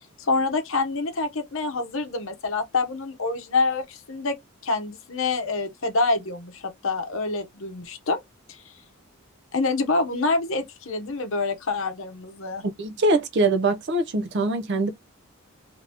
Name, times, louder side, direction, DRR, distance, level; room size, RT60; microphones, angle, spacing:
voice 1, 0.2-4.3 4.6-8.2 8.5-8.6 9.5-12.6, left 3 dB, 65° left, 0.7 m, -26 dB
voice 2, 12.8-14.9, right 2 dB, 50° right, 0.5 m, -23 dB
2.7 x 2.6 x 3.4 m
head